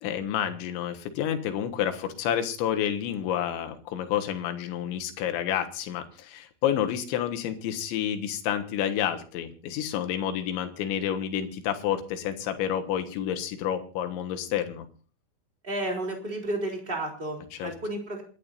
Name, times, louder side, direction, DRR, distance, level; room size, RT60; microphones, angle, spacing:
voice 1, 0.0-14.9 17.6-17.7, left 10 dB, 85° left, 7 dB, 3.7 m, -29 dB
voice 2, 15.6-18.2, right 1 dB, 15° right, 1 dB, 3.1 m, -32 dB
28.0 x 12.0 x 2.7 m, 0.38 s
omnidirectional pair, 5.2 m